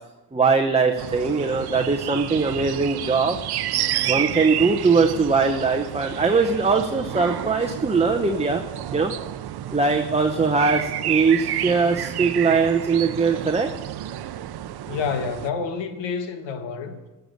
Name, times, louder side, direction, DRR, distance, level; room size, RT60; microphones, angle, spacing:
voice 1, 0.3-3.4 4.1-8.6 8.9-9.1 9.7-13.7, right 4 dB, 15° right, 3 dB, 0.8 m, -21 dB
sound 1, 1.0-15.5, right 12 dB, 60° right, 0.7 m, -30 dB
voice 2, 14.9-17.0, left 5 dB, 85° left, 7 dB, 1.5 m, -28 dB
13.5 x 6.8 x 6.6 m, 1.1 s
cardioid pair, 100°, 43 cm